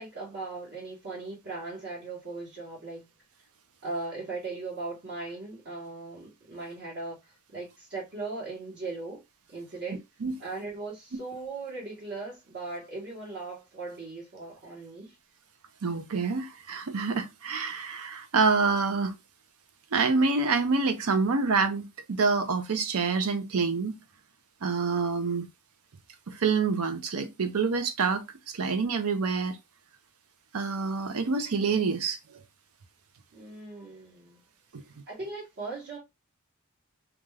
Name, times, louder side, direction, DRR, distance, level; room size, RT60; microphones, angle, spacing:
voice 1, 0.0-3.1 3.8-9.2 9.5-10.0 10.4-15.1 33.3-34.4 35.1-36.0, right 3 dB, 50° right, 1.1 m, -38 dB
voice 2, 15.8-19.1 19.9-21.8 22.1-24.0 24.6-25.5 26.3-29.6 30.5-32.4 34.7-34.8, right 4 dB, 70° right, 0.6 m, -27 dB
2.5 x 2.3 x 3.1 m
head